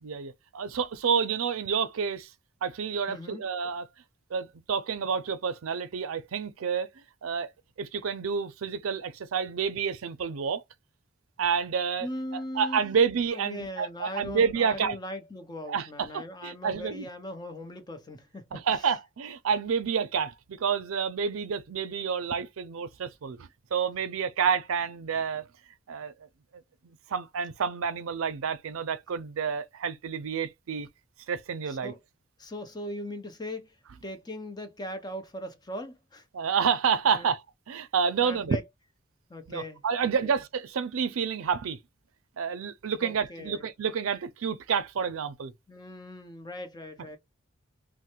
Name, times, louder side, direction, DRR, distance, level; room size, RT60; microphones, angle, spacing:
voice 1, 0.0-2.3 2.6-3.9 4.3-6.9 7.2-7.5 7.8-10.6 11.4-12.1 12.3-15.0 15.7-15.9 16.1-17.1 18.5-25.4 25.9-26.1 26.8-30.9 31.3-31.9 36.3-38.6 39.5-41.8 42.4-45.5, right 6 dB, 90° right, 0.5 m, -29 dB
voice 2, 3.1-3.4 12.0-12.8 13.3-18.6 31.7-32.0 32.4-33.7 34.0-36.2 37.1-37.3 38.2-38.6 39.3-40.4 43.0-43.7 45.7-47.2, left 1 dB, 20° left, 0.5 m, -39 dB
3.1 x 2.1 x 2.9 m
head